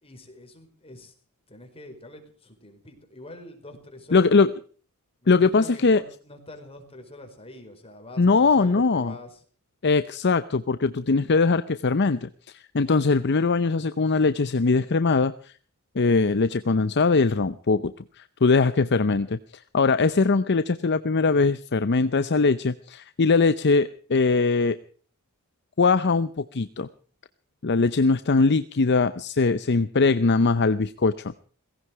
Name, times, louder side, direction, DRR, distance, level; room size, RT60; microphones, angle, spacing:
voice 1, 0.0-1.1 1.5-4.5 5.2-9.4, left 1 dB, 25° left, 5 dB, 4.8 m, -44 dB
voice 2, 4.1-4.5 5.3-6.0 8.2-9.1 9.8-15.5 15.9-19.4 19.7-24.8 25.8-26.9 27.6-31.3, left 4 dB, 50° left, 12 dB, 0.7 m, -21 dB
18.0 x 16.5 x 4.7 m, 0.43 s
head